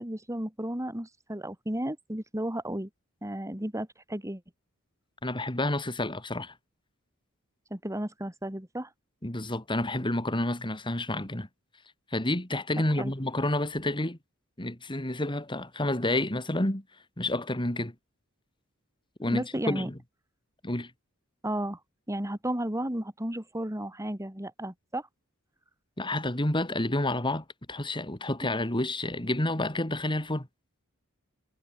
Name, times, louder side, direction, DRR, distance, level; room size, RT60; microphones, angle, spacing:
voice 1, 0.0-2.9 3.2-4.4 7.7-8.9 13.0-13.1 19.2-19.9 21.4-21.8 22.1-25.1, right 1 dB, 15° right, 2.8 m, -33 dB
voice 2, 5.2-6.5 9.2-11.5 12.1-14.2 14.6-16.8 17.2-17.9 19.2-20.0 20.6-20.9 26.0-30.5, left 1 dB, 25° left, 3.0 m, -29 dB
head